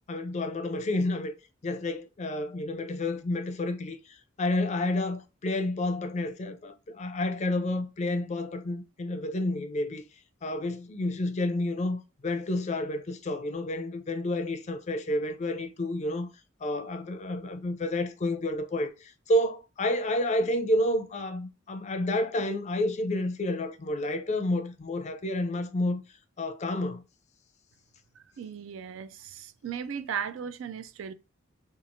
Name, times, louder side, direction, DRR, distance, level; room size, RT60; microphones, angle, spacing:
voice 1, 0.1-1.3 1.6-10.0 10.4-16.3 16.6-26.0 26.4-27.0, left 1 dB, 35° left, 0.4 m, -30 dB
voice 2, 28.2-31.1, right 7 dB, 70° right, 0.3 m, -37 dB
2.9 x 2.4 x 2.5 m
head